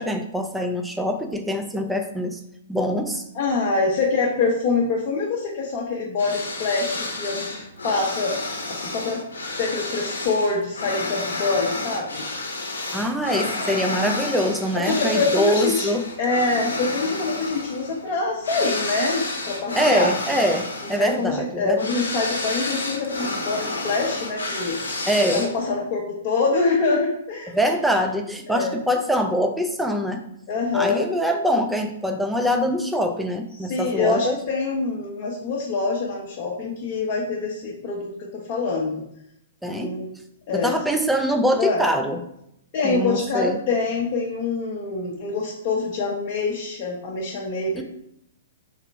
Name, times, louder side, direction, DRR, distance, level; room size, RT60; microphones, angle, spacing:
voice 1, 0.0-2.4 2.7-3.2 12.9-16.0 19.7-21.8 25.1-25.4 27.5-30.2 30.7-34.4 39.6-40.0 40.5-42.2 42.8-43.6 47.7-47.8, equal, 5° right, 4 dB, 0.4 m, -23 dB
voice 2, 3.3-9.2 9.6-12.2 13.6-13.9 14.7-20.1 20.8-24.8 25.3-27.6 28.5-28.8 30.5-31.0 33.6-39.0 39.7-40.1 40.5-40.7 41.6-41.8 42.7-47.8, left 3 dB, 40° left, -3 dB, 0.7 m, -25 dB
sound 1, 6.2-25.8, left 2 dB, 75° left, 0.7 m, -30 dB
3.3 x 2.9 x 4.4 m, 0.76 s
figure-of-eight pair, 115°, 0 cm